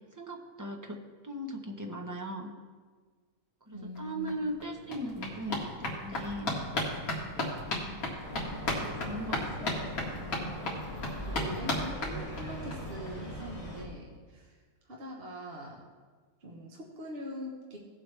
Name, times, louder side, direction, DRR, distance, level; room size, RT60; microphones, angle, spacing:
voice 1, 0.2-1.0 1.2-2.5 3.7-6.5 7.8-8.0 8.8-9.9, equal, 15° right, 2 dB, 0.6 m, -38 dB
voice 2, 3.7-4.4 11.2-14.6 14.8-15.8 16.4-17.8, equal, 40° right, -1 dB, 1.4 m, -43 dB
sound 1, 4.0-4.1 4.3-12.8 13.1-13.2 13.4-13.5 13.8-13.9, left 1 dB, 65° left, 2.3 m, -35 dB
sound 2, 8.2-13.8, equal, 30° left, 3.0 m, -40 dB
17.0 x 7.6 x 3.3 m, 1.5 s
omnidirectional pair, 1.7 m